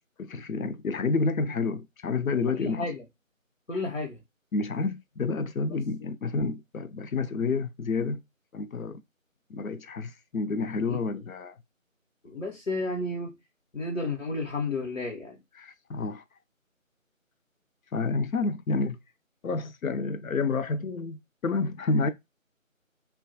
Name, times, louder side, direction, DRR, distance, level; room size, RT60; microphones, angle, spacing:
voice 1, 0.2-2.9 4.5-8.2 8.5-9.0 9.5-11.5 15.6-16.2 17.9-19.0 19.4-22.1, left 4 dB, 85° left, 0.5 m, -29 dB
voice 2, 2.6-2.9 3.7-4.2 10.9-11.0 12.2-13.3 13.7-15.4, left 2 dB, 65° left, 0.9 m, -32 dB
2.3 x 2.2 x 2.7 m
figure-of-eight pair, 170°, 41 cm